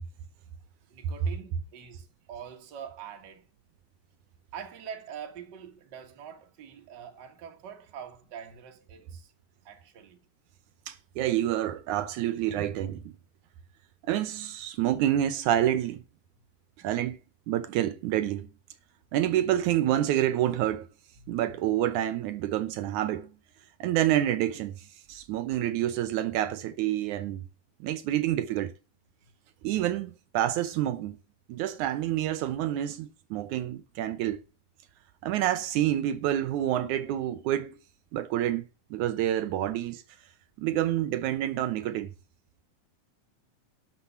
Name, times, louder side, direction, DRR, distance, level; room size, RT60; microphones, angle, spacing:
voice 1, 0.9-3.4 4.5-9.3 9.6-10.2 16.8-16.9 21.2-21.5, right 8 dB, 45° right, 1.7 m, -44 dB
voice 2, 10.9-13.1 14.1-16.0 16.8-17.2 17.5-18.5 19.1-20.9 21.3-23.3 23.8-27.5 27.8-28.7 29.6-31.2 31.5-34.4 35.2-37.7 38.1-40.0 40.6-42.1, right 12 dB, 75° right, 2.1 m, -28 dB
12.0 x 6.2 x 5.5 m
omnidirectional pair, 3.6 m